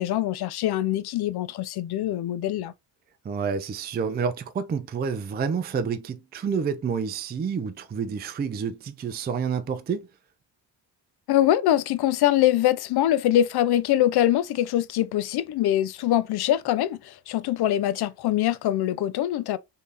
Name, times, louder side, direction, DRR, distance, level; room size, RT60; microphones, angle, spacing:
voice 1, 0.0-2.7 11.3-19.6, left 12 dB, 55° left, 0.5 m, -23 dB
voice 2, 3.2-10.1, right 6 dB, 20° right, 0.4 m, -29 dB
3.2 x 2.8 x 3.3 m
supercardioid pair, 70°, 48 cm